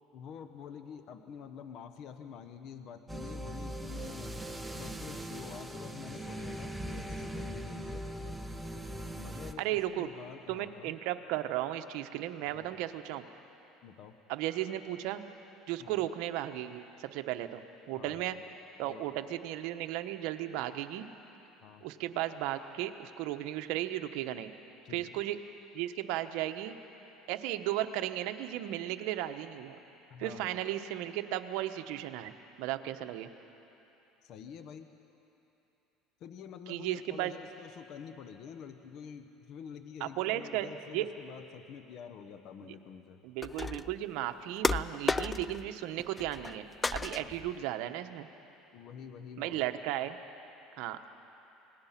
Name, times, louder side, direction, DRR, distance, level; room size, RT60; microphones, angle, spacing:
voice 1, 0.1-4.3 4.7-8.1 9.1-10.9 12.4-12.9 13.8-14.2 15.8-16.1 18.0-18.4 18.9-19.2 21.6-21.9 24.8-25.2 30.1-30.6 34.2-34.9 36.2-43.2 47.2-47.5 48.7-49.7, left 7 dB, 55° left, 8 dB, 1.2 m, -48 dB
sound 1, 3.1-9.5, right 1 dB, 5° right, 1.0 m, -40 dB
voice 2, 9.6-10.1 10.5-13.3 14.3-15.2 15.7-18.4 18.8-21.1 21.8-24.5 24.9-25.4 25.7-26.7 27.3-29.8 30.2-32.3 32.6-33.3 36.7-37.3 40.0-41.1 43.2-46.7 46.9-48.3 49.4-50.2 50.8-51.0, right 13 dB, 70° right, 8 dB, 1.0 m, -35 dB
sound 2, 43.4-44.0 44.6-45.7 46.0-46.6 46.8-47.5, left 3 dB, 15° left, 0.4 m, -33 dB
27.5 x 19.5 x 5.9 m, 3.0 s
supercardioid pair, 115°, 0 cm